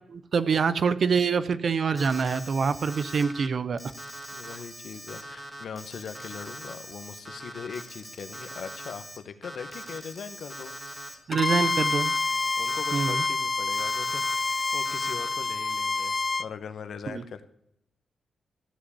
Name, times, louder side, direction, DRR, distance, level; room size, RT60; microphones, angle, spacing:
voice 1, 0.1-3.8 11.3-12.2 12.9-13.2 17.1-17.2, right 5 dB, 50° right, 15 dB, 0.6 m, -25 dB
Alarm, 2.0-3.5 3.8-9.2 9.4-11.2 11.6-13.3 13.7-15.4, equal, 10° right, 1.6 m, -42 dB
voice 2, 4.3-11.2 12.6-17.4, left 6 dB, 70° left, 10 dB, 1.0 m, -41 dB
Bowed string instrument, 11.3-16.5, left 4 dB, 30° left, 0.3 m, -27 dB
14.5 x 5.2 x 8.3 m, 0.77 s
wide cardioid pair, 145°, 0 cm